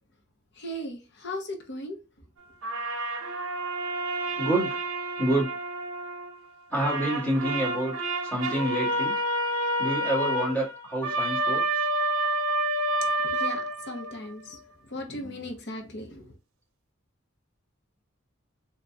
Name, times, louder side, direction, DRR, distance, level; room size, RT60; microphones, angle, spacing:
voice 1, 0.6-2.0 13.3-14.6 14.9-16.3, left 1 dB, 55° left, 0.9 m, -37 dB
sound 1, 2.6-6.4 6.7-14.3, right 1 dB, 85° right, 0.6 m, -29 dB
voice 2, 4.3-4.8 5.2-5.5 6.7-9.2 9.8-11.9, right 1 dB, 5° left, 1.7 m, -28 dB
3.9 x 2.9 x 2.3 m
head